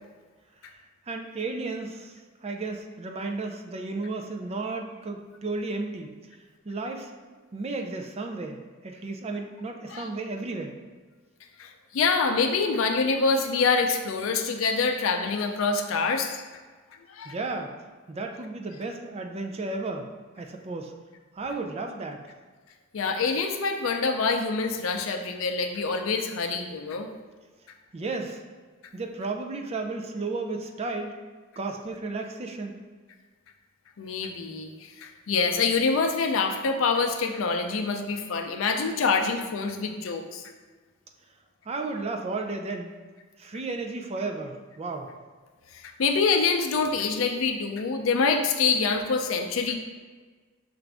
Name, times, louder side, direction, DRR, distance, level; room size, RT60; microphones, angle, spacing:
voice 1, 1.1-6.2 6.7-7.1 7.5-10.8 17.2-17.7 18.1-20.1 20.4-20.9 21.3-22.2 27.9-28.4 28.9-31.2 31.6-32.7 41.7-42.9 43.4-45.1, right 3 dB, 30° right, 4 dB, 0.4 m, -33 dB
voice 2, 11.6-16.4 17.1-17.4 22.9-27.1 34.0-40.4 45.7-49.7, left 4 dB, 80° left, 4 dB, 0.5 m, -26 dB
5.9 x 2.5 x 3.3 m, 1.4 s
head